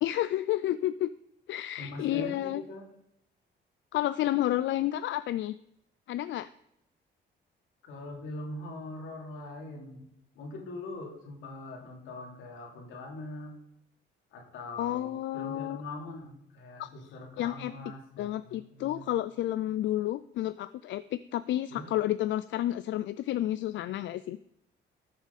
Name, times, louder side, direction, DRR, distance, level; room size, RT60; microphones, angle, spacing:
voice 1, 0.0-1.1 1.5-2.6 3.9-5.6 6.1-6.5 14.8-15.8 16.8-16.9 17.4-17.7 18.2-24.4, left 13 dB, 70° left, 15 dB, 0.4 m, -30 dB
voice 2, 1.8-2.9 7.8-10.1 10.3-13.5 14.3-19.1 21.7-21.9, left 2 dB, 90° left, 0 dB, 3.1 m, -42 dB
13.5 x 7.2 x 4.1 m, 0.77 s
cardioid pair, 90°, 20 cm